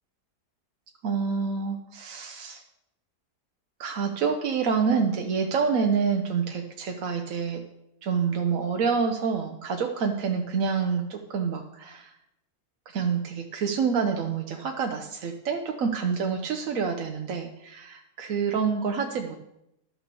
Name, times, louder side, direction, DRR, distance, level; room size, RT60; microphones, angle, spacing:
voice 1, 1.0-2.6 3.8-7.6 8.0-12.1 12.9-19.4, right 6 dB, 60° right, 4 dB, 1.1 m, -27 dB
12.0 x 6.0 x 6.8 m, 0.84 s
omnidirectional pair, 1.7 m